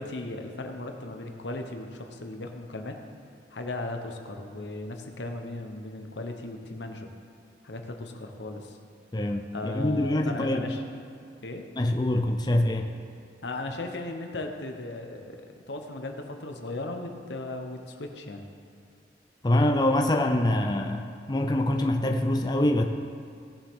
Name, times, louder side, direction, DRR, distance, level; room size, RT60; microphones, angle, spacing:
voice 1, 0.0-3.0 3.5-7.1 7.6-8.8 9.5-10.8 11.4-11.6 13.4-18.5, left 2 dB, 90° left, 4 dB, 1.0 m, -36 dB
voice 2, 9.1-10.7 11.8-12.9 19.4-22.8, left 1 dB, 25° left, 3 dB, 0.5 m, -25 dB
17.5 x 7.3 x 3.7 m, 2.3 s
head